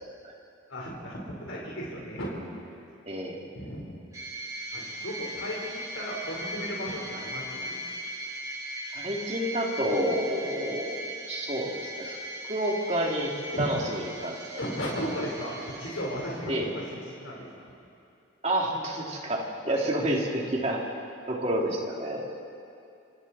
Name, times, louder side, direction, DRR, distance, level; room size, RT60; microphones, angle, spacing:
voice 1, 0.7-2.3 3.5-3.8 4.7-7.8 13.5-13.7 14.6-17.5 19.7-19.8, equal, 80° left, -3 dB, 4.4 m, -35 dB
voice 2, 3.1-3.4 8.9-10.9 11.3-11.7 12.0-12.2 12.5-13.3 13.6-14.3 16.5-16.7 18.4-20.8 21.3-22.3, right 1 dB, 30° right, -2 dB, 3.0 m, -29 dB
sound 1, 4.1-17.0, right 1 dB, 15° right, 2.4 m, -39 dB
27.0 x 26.0 x 4.3 m, 2.5 s
head